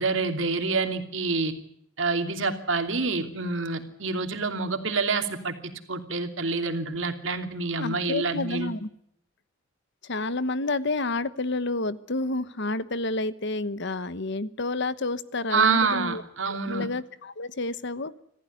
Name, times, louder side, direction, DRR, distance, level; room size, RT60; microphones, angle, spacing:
voice 1, 0.0-1.5 2.0-8.7 15.5-16.9, right 4 dB, 70° right, 6 dB, 2.9 m, -27 dB
voice 2, 7.8-8.9 10.1-16.2 16.5-18.2, left 2 dB, 65° left, 15 dB, 1.1 m, -30 dB
26.0 x 15.0 x 9.7 m, 0.73 s
head